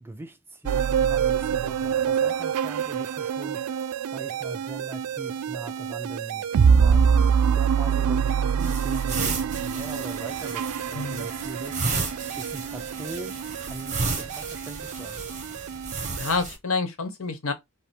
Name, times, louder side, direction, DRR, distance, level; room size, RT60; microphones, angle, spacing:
voice 1, 0.0-6.4 6.8-15.2, right 2 dB, 10° right, 0.5 m, -41 dB
sound 1, 0.7-16.4, right 7 dB, 85° right, 0.4 m, -26 dB
sound 2, 8.6-16.6, right 4 dB, 35° right, 1.1 m, -33 dB
voice 2, 10.9-11.3 16.2-17.5, left 4 dB, 65° left, 1.0 m, -28 dB
5.3 x 2.1 x 4.4 m
head